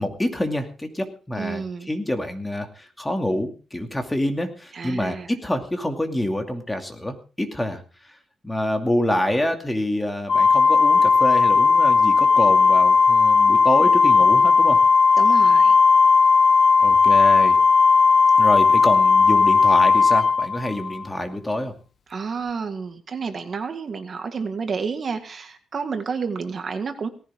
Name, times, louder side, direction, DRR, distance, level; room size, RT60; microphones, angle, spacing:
voice 1, 0.0-7.8 8.4-14.8 16.8-17.6 18.4-21.7, left 1 dB, 10° left, 4 dB, 2.4 m, -26 dB
voice 2, 1.4-1.9 4.7-5.3 15.2-15.8 22.1-27.1, right 5 dB, 40° right, 7 dB, 1.8 m, -30 dB
Organ, 10.3-21.0, left 4 dB, 50° left, 0.8 m, -16 dB
18.5 x 15.5 x 3.7 m, 0.36 s
cardioid pair, 130°, 0 cm